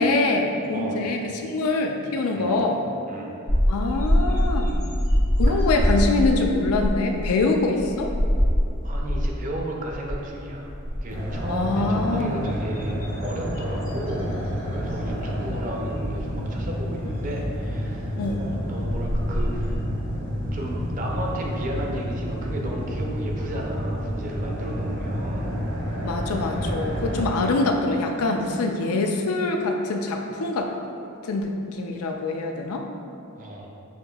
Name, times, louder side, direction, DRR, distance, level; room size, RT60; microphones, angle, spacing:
voice 1, 0.0-2.8 3.7-4.8 5.4-8.1 11.5-12.3 18.2-18.4 26.0-30.7 31.2-32.9, left 3 dB, 85° left, 3 dB, 0.4 m, -24 dB
voice 2, 0.7-1.1 2.3-2.6 3.1-3.3 5.5-5.9 8.8-19.8 20.5-25.5 33.4-33.7, right 1 dB, 35° right, -1 dB, 0.5 m, -34 dB
sound 1, 3.5-9.5 9.9-10.3 10.6-11.6 12.2-14.5 14.9-15.1 16.2-16.3 18.4-18.5 18.9-19.8, equal, 60° left, 0.9 m, -24 dB
sound 2, 11.1-27.3, equal, 70° right, 1.0 m, -29 dB
6.4 x 2.6 x 2.3 m, 2.6 s
head